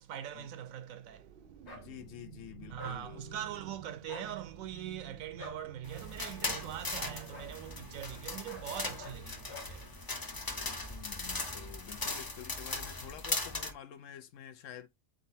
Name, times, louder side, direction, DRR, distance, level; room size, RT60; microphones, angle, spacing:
voice 1, 0.0-1.4 2.7-9.9 10.7-10.9, right 10 dB, 80° right, 1.0 m, -42 dB
sound 1, 1.1-9.3, right 9 dB, 60° right, 0.6 m, -51 dB
sound 2, 1.6-1.9 2.8-3.0 4.0-4.3 5.4-5.6 6.4-6.6 7.3-7.5 8.5-8.7 9.0-9.2 9.5-9.7, left 3 dB, 55° left, 1.5 m, -47 dB
voice 2, 1.7-3.6 10.9-14.9, left 10 dB, 70° left, 1.0 m, -49 dB
sound 3, 5.8-13.7, left 3 dB, 35° left, 0.3 m, -39 dB
4.0 x 3.9 x 2.7 m
omnidirectional pair, 1.4 m